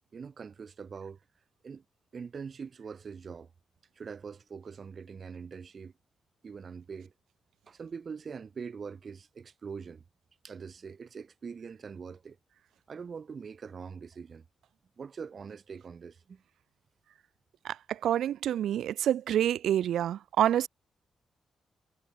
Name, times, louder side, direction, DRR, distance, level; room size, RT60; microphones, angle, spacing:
voice 1, 0.1-1.2 1.6-1.8 2.1-3.5 4.0-5.9 6.4-7.1 7.7-10.0 10.4-12.4 12.9-14.4 15.0-16.4, right 6 dB, 35° right, 4.7 m, -43 dB
voice 2, 17.6-20.7, right 11 dB, 90° right, 2.3 m, -27 dB
wide cardioid pair, 165°, 0 cm